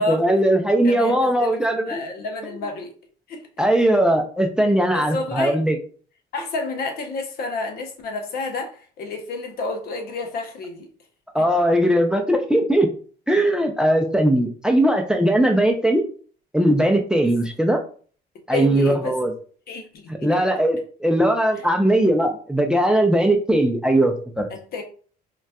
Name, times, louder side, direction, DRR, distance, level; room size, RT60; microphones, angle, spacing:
voice 1, 0.1-2.0 3.6-5.8 11.3-12.9 13.3-16.0 16.5-17.8 18.5-19.3 20.1-24.5, right 1 dB, 5° right, 4 dB, 0.4 m, -19 dB
voice 2, 0.8-2.9 3.3-3.4 4.9-5.5 6.3-10.9 11.3-11.4 17.2-17.4 18.5-19.2 19.7-20.4 24.5-24.8, left 3 dB, 65° left, 4 dB, 0.8 m, -30 dB
3.9 x 2.2 x 2.3 m, 0.43 s
cardioid pair, 110°, 17 cm